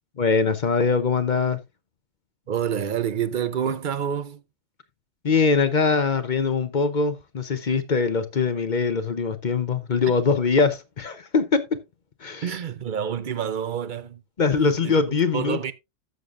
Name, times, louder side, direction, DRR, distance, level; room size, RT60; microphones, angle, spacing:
voice 1, 0.2-1.6 5.2-11.8 12.2-12.5 14.4-15.6, left 4 dB, 45° left, 0.9 m, -22 dB
voice 2, 2.5-4.4 12.4-14.2 14.8-15.0 15.3-15.7, right 8 dB, 50° right, 0.7 m, -27 dB
13.0 x 7.0 x 2.5 m
omnidirectional pair, 1.3 m